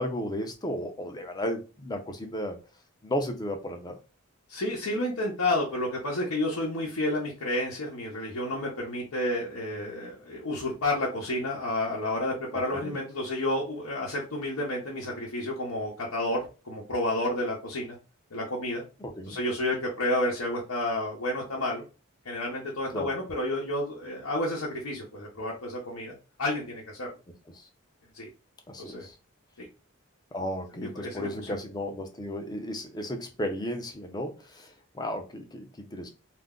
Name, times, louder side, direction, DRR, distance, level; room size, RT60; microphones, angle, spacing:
voice 1, 0.0-2.6 3.0-4.0 12.5-13.0 19.0-19.4 22.9-23.1 27.5-27.7 28.7-29.1 30.3-36.1, equal, 20° left, 4 dB, 0.5 m, -34 dB
voice 2, 4.5-18.0 18.3-18.8 19.3-21.8 22.2-27.1 28.1-28.3 28.8-29.0 29.6-29.7 31.0-31.5, left 1 dB, 90° left, -4 dB, 0.8 m, -30 dB
2.5 x 2.1 x 3.6 m, 0.31 s
head